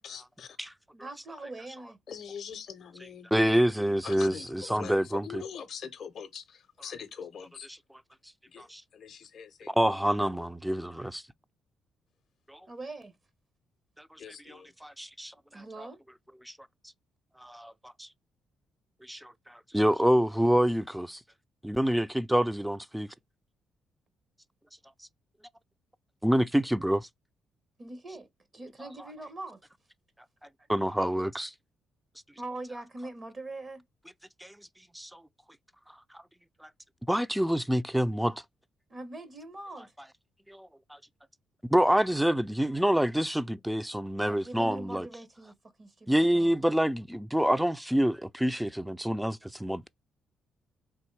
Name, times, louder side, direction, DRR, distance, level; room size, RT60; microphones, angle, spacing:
voice 1, 0.0-0.6 2.1-3.6 4.0-7.7 8.5-8.6 8.9-9.7 14.2-14.7, left 7 dB, 55° left, 0.5 m, -43 dB
voice 2, 0.9-2.0 12.7-13.1 15.5-16.0 27.8-29.6 30.6-30.7 32.4-33.8 38.9-39.9 44.2-46.1 46.3-46.6, right 2 dB, 35° right, 0.8 m, -42 dB
voice 3, 3.3-5.4 7.7-7.8 8.6-8.8 9.7-11.2 12.5-12.6 14.5-15.3 16.5-16.6 17.4-17.7 18.0-18.1 19.1-21.2 21.6-23.1 26.2-27.1 30.7-31.5 34.4-34.5 34.9-35.2 36.6-36.7 37.1-38.4 40.5-40.7 41.7-45.1 46.1-49.9, equal, 5° right, 0.3 m, -27 dB
3.5 x 2.6 x 4.5 m
cardioid pair, 90°, 0 cm